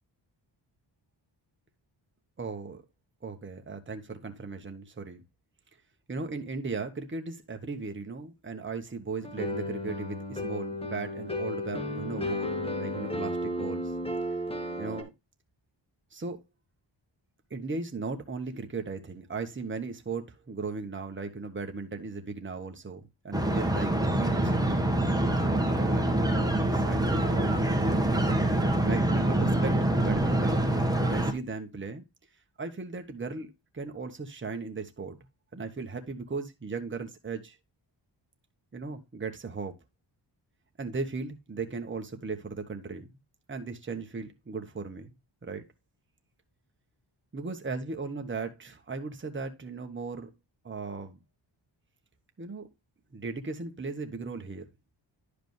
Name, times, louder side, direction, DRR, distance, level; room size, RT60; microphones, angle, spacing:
voice 1, 2.4-2.8 3.2-5.2 6.1-13.9 14.8-15.1 16.1-16.4 17.5-24.9 25.3-28.3 28.8-30.6 30.9-32.0 32.6-35.2 35.5-37.6 38.7-39.7 40.8-43.1 43.5-45.1 45.4-45.6 47.3-50.3 50.6-51.2 52.4-52.7 53.1-54.7, right 4 dB, 25° right, 1.2 m, -37 dB
sound 1, 9.2-15.0, left 1 dB, 10° left, 1.6 m, -33 dB
sound 2, 23.3-31.3, right 1 dB, 10° right, 1.3 m, -25 dB
10.5 x 5.0 x 3.2 m
cardioid pair, 85°, 45 cm